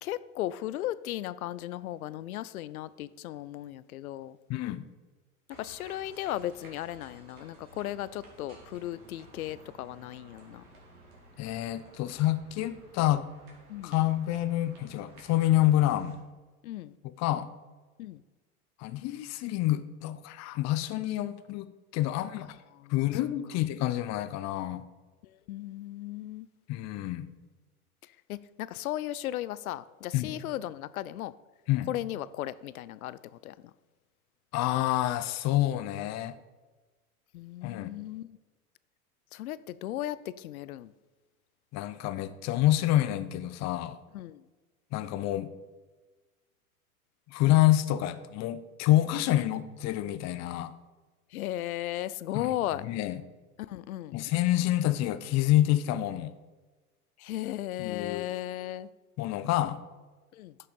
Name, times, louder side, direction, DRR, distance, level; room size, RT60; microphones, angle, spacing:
voice 1, 0.0-4.4 5.5-10.6 13.7-14.0 16.6-17.0 18.0-18.2 22.4-22.9 25.2-26.5 28.0-31.3 31.9-33.7 37.3-38.3 39.3-40.9 44.1-44.4 51.3-52.8 53.6-54.2 57.2-58.9 60.3-60.6, left 14 dB, 75° left, 0.6 m, -36 dB
voice 2, 4.5-4.8 11.4-13.3 13.8-16.2 17.2-17.5 18.8-21.6 21.9-22.5 22.9-24.9 26.7-27.3 30.1-30.3 31.7-31.9 34.5-36.3 37.6-37.9 41.7-44.0 44.9-45.5 47.3-50.7 52.3-52.5 52.8-53.2 54.1-56.3 57.8-58.3 59.2-59.8, left 14 dB, 35° left, 0.7 m, -27 dB
sound 1, 5.5-16.2, right 2 dB, 80° right, 3.5 m, -54 dB
10.5 x 6.6 x 5.4 m
hypercardioid pair, 95°, 44 cm